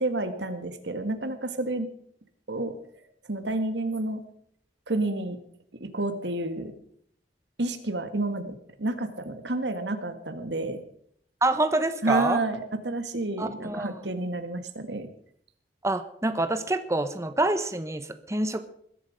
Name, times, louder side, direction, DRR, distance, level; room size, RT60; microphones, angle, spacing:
voice 1, 0.0-1.9 2.5-2.7 3.3-4.2 4.9-5.4 5.8-6.7 7.6-10.8 12.0-15.1, right 2 dB, 85° right, 9 dB, 1.9 m, -30 dB
voice 2, 11.4-12.4 13.4-13.9 15.8-18.6, right 2 dB, 15° right, 10 dB, 0.9 m, -26 dB
21.0 x 12.0 x 5.1 m, 0.66 s
head